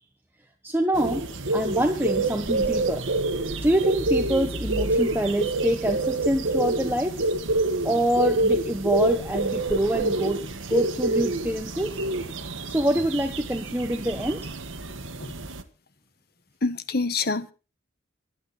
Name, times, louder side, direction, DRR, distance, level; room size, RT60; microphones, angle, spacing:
voice 1, 0.6-1.3 1.5-3.1 3.6-7.3 7.8-12.0 12.7-14.5, right 1 dB, 10° right, 1.2 m, -25 dB
sound 1, 0.9-15.6, right 2 dB, 80° right, 1.7 m, -27 dB
voice 2, 16.6-17.5, left 3 dB, 50° left, 1.4 m, -26 dB
24.5 x 8.7 x 4.3 m
head